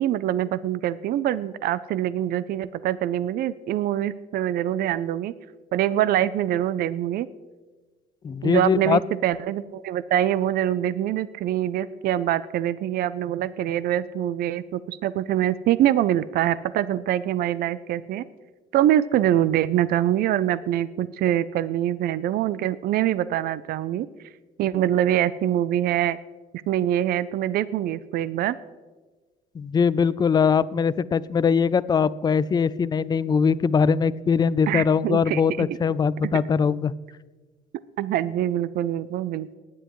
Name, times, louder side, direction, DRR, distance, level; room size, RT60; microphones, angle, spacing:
voice 1, 0.0-5.3 5.7-7.3 8.4-18.2 18.7-24.1 24.6-26.2 26.7-28.6 34.7-35.7 38.0-39.5, right 12 dB, 65° right, 17 dB, 0.5 m, -24 dB
voice 2, 8.2-9.0 29.6-36.9, left 6 dB, 25° left, 17 dB, 0.4 m, -21 dB
19.0 x 10.0 x 3.1 m, 1.3 s
cardioid pair, 110°, 17 cm